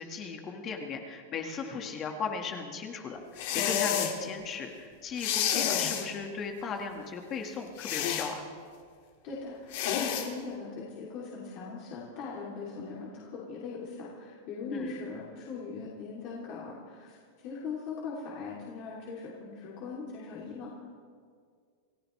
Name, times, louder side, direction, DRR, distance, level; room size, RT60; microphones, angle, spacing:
voice 1, 0.0-8.4 14.7-14.9, left 5 dB, 25° left, 4 dB, 1.7 m, -37 dB
sound 1, 3.4-4.1 5.2-6.1 7.8-8.3 9.7-10.3, left 9 dB, 60° left, 2.1 m, -29 dB
voice 2, 9.2-20.7, left 4 dB, 45° left, -6 dB, 3.0 m, -40 dB
28.5 x 14.5 x 3.3 m, 2.1 s
supercardioid pair, 155°, 0 cm